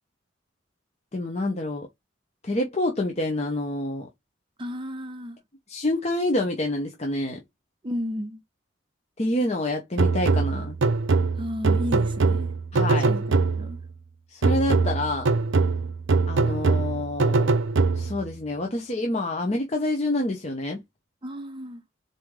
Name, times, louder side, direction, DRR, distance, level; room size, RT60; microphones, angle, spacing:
voice 1, 1.1-1.9 2.4-4.1 5.7-7.4 9.2-10.8 12.7-13.1 14.3-15.4 16.3-17.5 17.9-20.8, left 1 dB, 35° left, 0.7 m, -27 dB
voice 2, 4.6-5.4 7.8-8.4 11.4-12.5 13.1-13.8 21.2-21.8, equal, 25° right, 0.7 m, -33 dB
sound 1, 10.0-13.9 14.4-18.3, right 4 dB, 80° right, 0.6 m, -23 dB
4.1 x 3.1 x 3.6 m
head